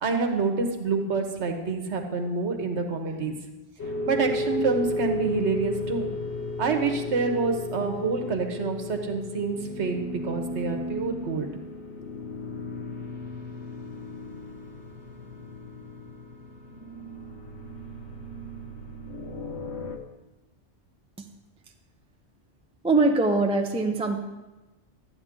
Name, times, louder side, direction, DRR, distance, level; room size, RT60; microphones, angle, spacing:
voice 1, 0.0-3.3 4.1-6.1 6.6-11.5, right 4 dB, 85° right, 5 dB, 1.3 m, -27 dB
sound 1, 3.8-20.0, left 2 dB, 75° left, 1.1 m, -34 dB
voice 2, 22.8-24.2, right 3 dB, 5° right, 3 dB, 0.6 m, -22 dB
12.5 x 8.9 x 3.7 m, 1.1 s
omnidirectional pair, 1.1 m